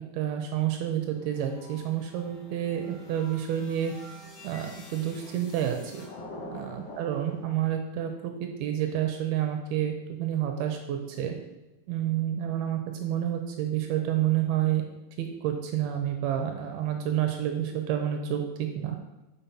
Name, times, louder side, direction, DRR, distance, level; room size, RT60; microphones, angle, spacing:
voice 1, 0.1-3.9 4.4-6.1 6.5-9.9 10.2-11.4 11.9-14.8 15.2-19.0, right 10 dB, 80° right, 5 dB, 2.4 m, -29 dB
sound 1, 1.2-7.4, left 2 dB, 75° left, 1.3 m, -48 dB
sound 2, 1.3-6.1, left 1 dB, 50° left, 2.2 m, -51 dB
5.9 x 5.6 x 5.5 m, 1.0 s
omnidirectional pair, 4.8 m